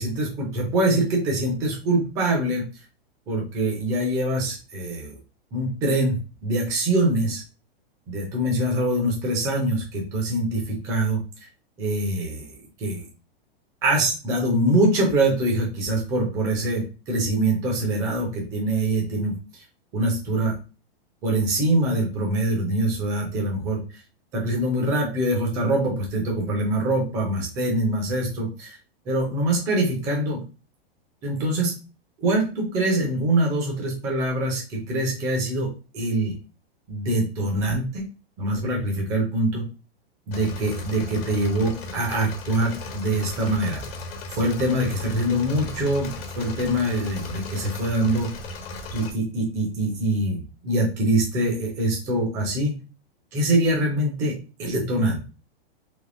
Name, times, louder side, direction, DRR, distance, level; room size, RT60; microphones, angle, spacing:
voice 1, 0.0-2.6 3.3-5.2 5.5-7.4 8.1-11.2 11.8-12.5 12.8-13.1 13.8-19.4 19.9-20.5 21.2-23.8 24.3-28.8 29.1-30.4 31.2-31.7 32.2-35.7 35.9-36.3 36.9-38.0 38.4-39.6 40.3-43.8 44.3-48.3 48.9-52.8 53.3-55.3, right 1 dB, 10° right, -1 dB, 0.4 m, -24 dB
Engine / Mechanisms, 40.3-49.1, left 2 dB, 70° left, 1.2 m, -36 dB
3.4 x 2.9 x 2.5 m, 0.33 s
supercardioid pair, 175°, 30 cm